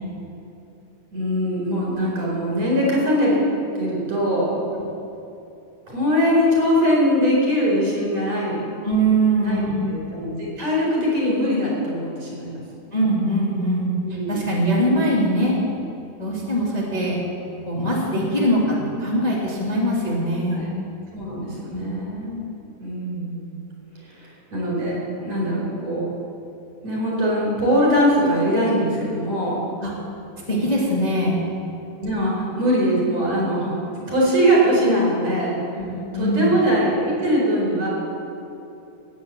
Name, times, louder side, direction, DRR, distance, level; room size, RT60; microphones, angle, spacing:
voice 1, 1.1-3.4 3.8-4.5 5.9-8.6 9.4-9.6 9.9-12.6 14.0-14.4 20.5-20.7 21.1-22.4 22.8-23.6 24.0-26.1 26.8-29.6 32.0-35.5 36.1-37.9, equal, 65° right, -4 dB, 5.7 m, -22 dB
voice 2, 8.8-9.7 12.9-13.9 14.3-15.6 16.2-17.2 17.6-20.7 21.7-21.9 29.8-29.9 30.5-31.4 35.8-36.5, right 1 dB, 15° left, -5 dB, 2.1 m, -22 dB
17.0 x 9.2 x 7.5 m, 2.8 s
omnidirectional pair, 3.4 m